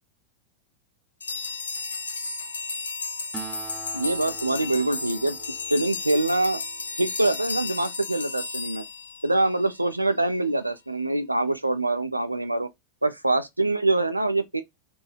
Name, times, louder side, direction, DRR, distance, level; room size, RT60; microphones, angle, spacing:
sound 1, 1.2-9.7, left 3 dB, 75° left, 0.4 m, -33 dB
Acoustic guitar, 3.3-7.1, right 6 dB, 10° right, 0.6 m, -44 dB
voice 1, 3.9-6.6 7.0-8.8 9.2-12.7 13.0-14.6, right 2 dB, 85° right, 0.4 m, -24 dB
2.9 x 2.3 x 4.1 m
figure-of-eight pair, 90°, 0 cm